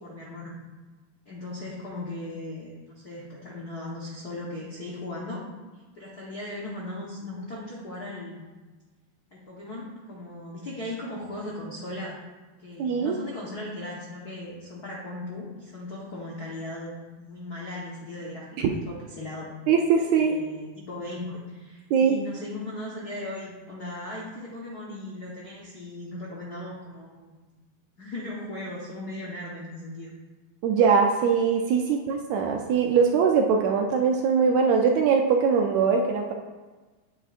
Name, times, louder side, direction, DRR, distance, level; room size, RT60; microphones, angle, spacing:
voice 1, 0.0-0.5 1.2-5.4 5.9-8.5 9.3-12.2 12.6-19.5 20.2-27.4 28.0-30.1 31.9-32.0, left 2 dB, 65° left, -6 dB, 0.9 m, -37 dB
voice 2, 12.8-13.2 19.7-20.4 21.9-22.2 30.6-36.3, right 6 dB, 75° right, 2 dB, 1.7 m, -22 dB
8.8 x 8.8 x 2.5 m, 1.3 s
omnidirectional pair, 3.6 m